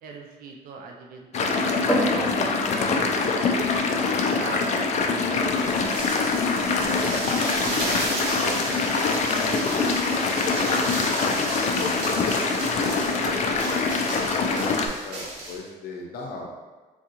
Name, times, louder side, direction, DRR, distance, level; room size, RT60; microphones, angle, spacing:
voice 1, 0.0-2.3 2.7-8.1 8.7-9.9 10.3-10.8 11.2-15.0, right 4 dB, 60° right, 1 dB, 0.4 m, -43 dB
sound 1, 1.3-14.9, left 4 dB, 45° left, 0.4 m, -24 dB
sound 2, 1.9-15.4, left 1 dB, 5° left, 0.6 m, -37 dB
voice 2, 5.0-5.9 8.3-8.6 9.0-9.2 14.4-16.5, left 2 dB, 65° left, -1 dB, 0.7 m, -39 dB
sound 3, 5.5-15.6, right 1 dB, 90° right, 0.8 m, -33 dB
3.7 x 2.3 x 2.9 m, 1.3 s
cardioid pair, 110°, 17 cm